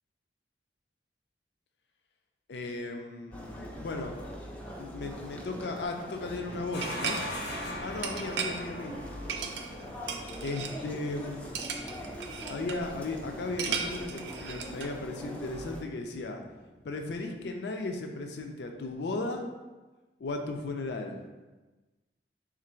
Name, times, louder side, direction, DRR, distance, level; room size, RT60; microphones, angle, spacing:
voice 1, 2.5-4.2 4.8-7.2 7.8-9.0 10.4-11.6 12.5-16.4 16.8-19.5 20.2-21.2, left 2 dB, 70° left, 4 dB, 0.4 m, -36 dB
sound 1, 3.3-15.8, equal, 10° left, 0.4 m, -43 dB
sound 2, 6.7-17.5, left 1 dB, 85° left, 0.9 m, -44 dB
sound 3, 6.8-7.3 8.0-8.6 9.3-9.8 10.1-10.7 11.6-12.8 13.6-14.9, right 6 dB, 75° right, 0.4 m, -35 dB
3.7 x 2.5 x 4.3 m, 1.2 s
head